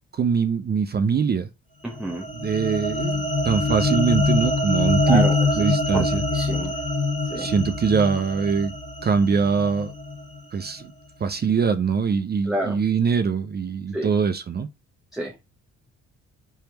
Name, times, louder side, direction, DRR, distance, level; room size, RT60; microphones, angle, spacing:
voice 1, 0.1-1.5 2.3-5.2 5.6-6.2 7.4-8.7 9.0-9.9 10.5-10.9 11.2-14.7, right 6 dB, 35° right, 0.5 m, -23 dB
voice 2, 1.8-2.3 5.0-5.5 5.9-6.0 6.3-6.7 7.3-7.5 12.5-12.8 13.9-14.1 15.1-15.3, equal, ahead, 0.7 m, -28 dB
sound 1, 1.9-10.4, left 2 dB, 25° left, 1.5 m, -24 dB
4.5 x 3.4 x 2.9 m
cardioid pair, 90°, 30 cm